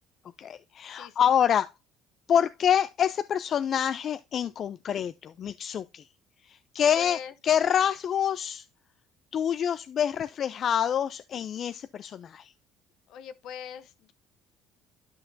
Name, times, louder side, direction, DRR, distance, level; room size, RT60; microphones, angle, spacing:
voice 1, 0.4-1.7 2.3-6.0 6.5-8.6 9.3-12.5, left 8 dB, 50° left, 0.4 m, -26 dB
voice 2, 0.9-1.3 6.9-7.3 13.1-14.1, left 8 dB, 65° left, 0.7 m, -41 dB
11.5 x 5.8 x 2.7 m
cardioid pair, 105°, 0 cm